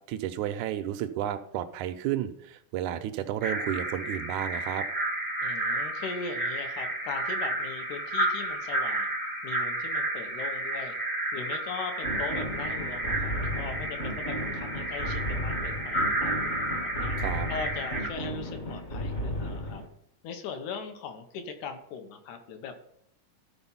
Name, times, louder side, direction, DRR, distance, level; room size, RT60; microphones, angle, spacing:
voice 1, 0.1-4.9 17.2-17.5, right 11 dB, 80° right, 11 dB, 1.9 m, -32 dB
sound 1, 3.4-18.1, right 1 dB, 10° right, 0.6 m, -31 dB
voice 2, 5.4-9.1 9.4-10.9 11.3-16.3 16.8-17.2 17.5-19.8 20.2-22.8, left 5 dB, 70° left, 6 dB, 2.3 m, -39 dB
sound 2, 12.0-19.9, equal, 35° left, 1.0 m, -34 dB
12.5 x 4.3 x 5.6 m, 0.74 s
omnidirectional pair, 3.7 m